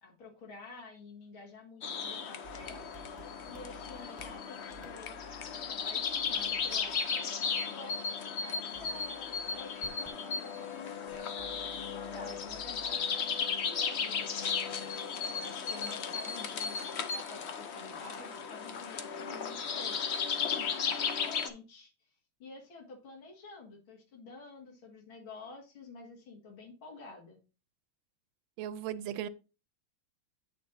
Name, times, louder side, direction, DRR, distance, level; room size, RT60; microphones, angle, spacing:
voice 1, 0.0-2.8 3.5-5.2 5.7-7.3 7.6-20.1 20.4-21.9 22.4-27.4, left 3 dB, 85° left, 2.8 m, -50 dB
sound 1, 1.8-21.5, left 6 dB, 70° left, 0.6 m, -35 dB
sound 2, 2.4-14.4, right 1 dB, 5° right, 0.8 m, -57 dB
voice 2, 28.6-29.3, right 10 dB, 90° right, 1.4 m, -37 dB
8.5 x 6.7 x 2.7 m
omnidirectional pair, 2.1 m